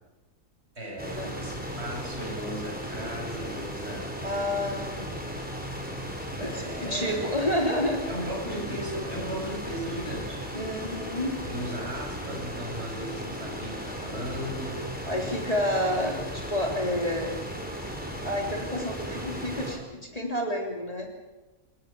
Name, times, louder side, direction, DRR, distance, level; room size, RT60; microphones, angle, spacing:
voice 1, 0.7-4.2 6.3-7.2 8.1-10.5 11.4-14.9, equal, 50° right, -1 dB, 7.8 m, -36 dB
sound 1, 1.0-19.8, equal, 5° right, 4.5 m, -36 dB
voice 2, 4.2-5.1 6.4-8.0 10.5-11.4 15.1-17.4 18.2-21.1, left 1 dB, 25° left, 0 dB, 3.6 m, -29 dB
28.5 x 17.0 x 7.0 m, 1.1 s
omnidirectional pair, 1.5 m